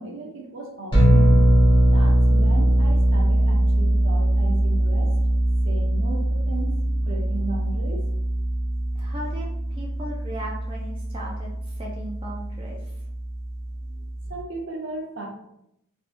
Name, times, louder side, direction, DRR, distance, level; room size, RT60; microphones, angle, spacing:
voice 1, 0.0-1.3 1.9-5.2 5.6-8.0 13.9-15.3, right 2 dB, 60° right, 1 dB, 0.7 m, -36 dB
sound 1, 0.9-14.3, right 1 dB, 25° left, 1.2 m, -21 dB
voice 2, 8.9-12.9, right 1 dB, 25° right, -3 dB, 0.4 m, -37 dB
3.5 x 2.7 x 2.5 m, 0.80 s
head